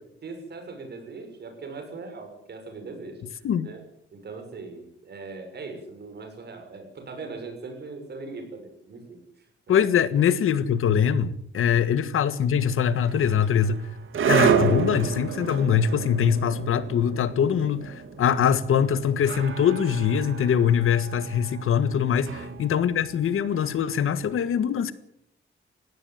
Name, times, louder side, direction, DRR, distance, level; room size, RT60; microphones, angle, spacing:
voice 1, 0.2-3.2 3.6-9.9 11.7-11.8 22.3-22.6, right 3 dB, 50° right, 5 dB, 6.6 m, -40 dB
voice 2, 9.7-13.8 14.2-24.9, left 8 dB, 90° left, 13 dB, 1.7 m, -23 dB
sound 1, 13.0-24.1, right 7 dB, 75° right, 2.9 m, -30 dB
19.5 x 16.0 x 9.3 m, 0.70 s
wide cardioid pair, 165°, 21 cm